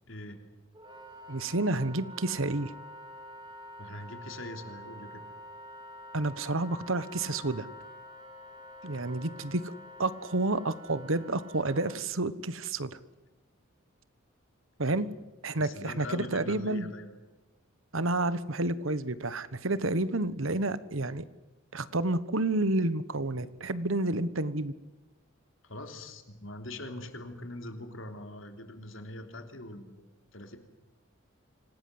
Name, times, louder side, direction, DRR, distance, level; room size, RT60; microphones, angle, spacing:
voice 1, 0.1-0.4 3.8-5.2 14.9-15.0 15.6-17.1 25.6-30.1 30.3-30.6, left 1 dB, 65° left, 5 dB, 3.4 m, -42 dB
Wind instrument woodwind instrument, 0.7-12.0, left 1 dB, 20° right, 3.7 m, -47 dB
voice 2, 1.3-2.7 6.1-7.7 8.8-9.6 10.0-13.0 14.8-15.1 15.4-16.9 17.9-21.3 21.7-24.7, right 2 dB, 70° right, 15 dB, 1.3 m, -30 dB
26.5 x 18.0 x 7.9 m, 1.1 s
head